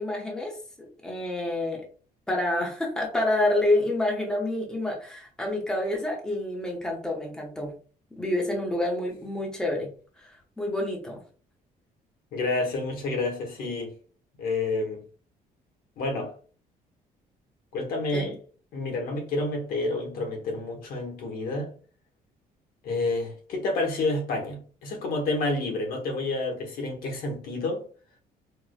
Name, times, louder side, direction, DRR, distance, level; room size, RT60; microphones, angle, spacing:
voice 1, 0.0-1.8 2.3-7.7 8.2-9.9 10.2-11.2 18.1-18.3, left 1 dB, 5° left, 0.8 m, -28 dB
voice 2, 12.3-13.9 14.4-15.0 16.0-16.3 17.7-18.3 18.7-21.7 22.8-27.8, left 2 dB, 70° left, 1.2 m, -29 dB
4.6 x 2.2 x 2.3 m
cardioid pair, 145°, 16 cm